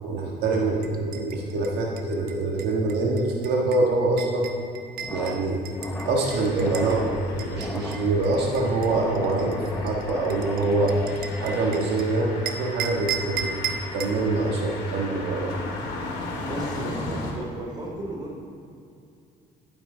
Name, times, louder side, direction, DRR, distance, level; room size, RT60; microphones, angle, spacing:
voice 1, 0.0-4.5 5.1-5.6 6.0-10.9 11.4-13.5 13.9-15.5, right 2 dB, 85° right, -1 dB, 1.6 m, -25 dB
sound 1, 0.8-7.0 7.4-12.0 12.5-14.2, right 7 dB, 60° right, 1.1 m, -36 dB
sound 2, 5.0-11.9, left 2 dB, 10° left, 0.8 m, -37 dB
sound 3, 5.7-17.3, left 3 dB, 85° left, 2.4 m, -37 dB
voice 2, 16.4-18.4, right 1 dB, 25° right, -2 dB, 3.2 m, -34 dB
14.5 x 9.1 x 3.9 m, 2.6 s
cardioid pair, 110°, 17 cm